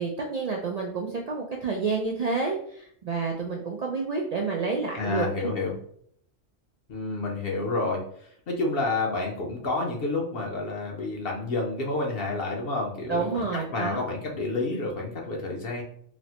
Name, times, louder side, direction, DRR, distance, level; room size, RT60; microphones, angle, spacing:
voice 1, 0.0-5.5 13.1-14.0, right 4 dB, 90° right, -1 dB, 0.3 m, -29 dB
voice 2, 4.9-5.8 6.9-8.0 8.5-13.5 13.7-15.8, left 2 dB, 60° left, -1 dB, 0.8 m, -29 dB
4.0 x 2.0 x 2.8 m, 0.64 s
omnidirectional pair, 1.2 m